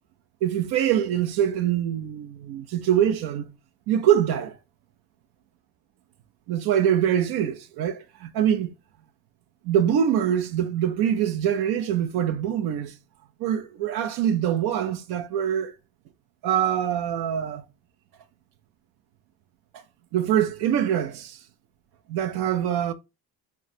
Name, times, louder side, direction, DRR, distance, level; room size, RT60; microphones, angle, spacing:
voice 1, 0.4-3.5 3.9-4.6 6.5-8.7 9.6-13.0 13.4-15.7 16.4-17.6 19.7-19.8 20.1-21.4 22.1-22.9, right 10 dB, 85° right, 0.5 m, -24 dB
3.7 x 2.2 x 4.1 m
cardioid pair, 85°, 37 cm